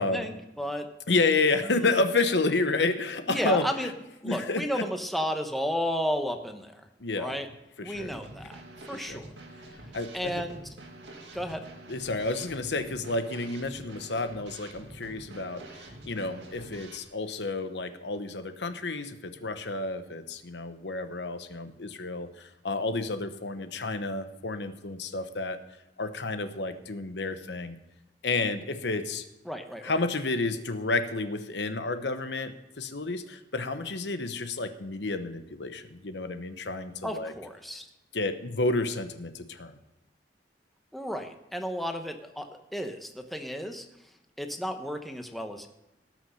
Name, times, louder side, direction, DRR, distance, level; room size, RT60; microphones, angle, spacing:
voice 1, 0.0-0.9 1.7-1.9 3.3-3.9 4.2-6.7 7.2-7.5 7.8-8.6 8.9-9.3 10.1-10.6 11.3-11.7 29.5-30.0 37.0-37.9 40.9-43.8 44.4-45.7, equal, ahead, 5 dB, 0.9 m, -33 dB
voice 2, 1.1-3.9 4.2-4.8 7.0-7.3 7.8-8.1 9.0-9.2 9.9-10.4 11.9-25.6 26.0-27.7 28.2-29.2 29.8-37.3 38.1-39.8, left 3 dB, 80° left, 9 dB, 1.0 m, -30 dB
Drum kit / Snare drum, 7.9-17.0, right 1 dB, 90° right, 2.0 m, -47 dB
18.0 x 6.2 x 5.7 m, 0.99 s
head